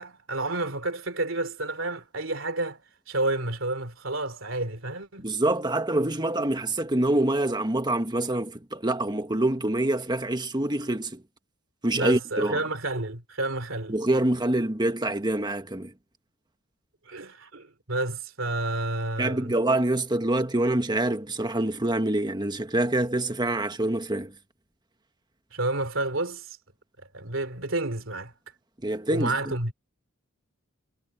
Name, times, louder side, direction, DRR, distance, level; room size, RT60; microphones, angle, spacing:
voice 1, 0.0-2.8 3.1-5.3 11.9-13.9 17.1-19.5 25.5-26.6 27.1-28.3 29.1-29.7, right 2 dB, 70° right, 3.3 m, -30 dB
voice 2, 5.2-11.2 11.8-12.6 13.9-15.9 19.2-24.3 28.8-29.5, right 1 dB, 20° right, 1.5 m, -26 dB
head